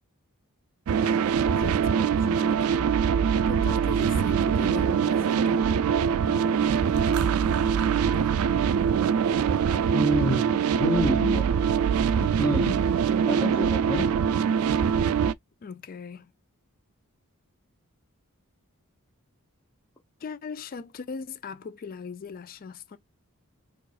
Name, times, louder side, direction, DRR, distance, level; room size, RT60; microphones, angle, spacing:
sound 1, 0.9-15.3, right 7 dB, 75° right, 0.3 m, -23 dB
voice 1, 1.0-2.8 3.5-5.9 6.2-8.5 15.6-16.3 20.2-23.0, left 5 dB, 40° left, 0.4 m, -40 dB
voice 2, 9.5-11.5 12.2-12.8 13.3-14.1, left 1 dB, 15° left, 0.9 m, -29 dB
4.7 x 2.4 x 2.4 m
head